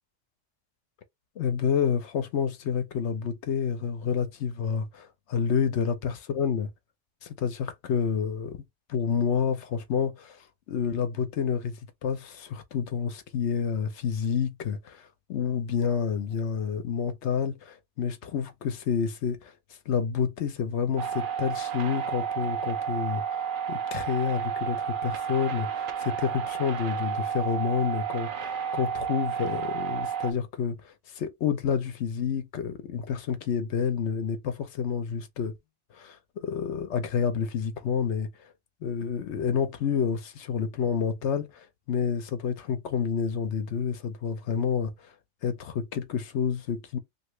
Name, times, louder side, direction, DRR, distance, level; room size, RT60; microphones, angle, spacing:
voice 1, 1.4-6.7 7.2-8.6 8.9-10.4 10.7-19.5 19.9-23.4 23.7-35.5 35.9-38.3 38.8-45.1 45.4-47.0, left 7 dB, 70° left, 0.9 m, -29 dB
sound 1, 21.0-30.3, right 8 dB, 55° right, 0.7 m, -31 dB
2.8 x 2.7 x 3.1 m
omnidirectional pair, 1.2 m